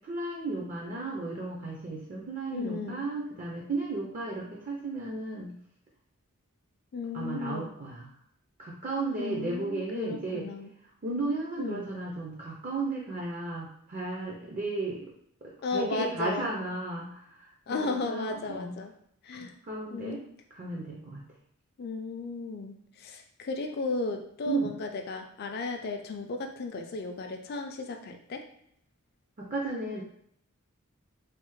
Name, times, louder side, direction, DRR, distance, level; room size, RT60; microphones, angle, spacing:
voice 1, 0.0-5.5 7.1-8.1 8.6-10.5 11.0-15.1 15.4-18.7 19.3-20.2 20.5-21.2 24.5-24.7 29.4-30.0, right 3 dB, 35° right, -3 dB, 0.4 m, -34 dB
voice 2, 2.5-3.0 6.9-7.7 9.2-10.7 11.6-11.9 15.6-16.5 17.7-18.9 19.2-19.5 19.9-20.3 21.8-28.4, left 3 dB, 45° left, 5 dB, 0.4 m, -34 dB
3.2 x 2.0 x 3.1 m, 0.69 s
head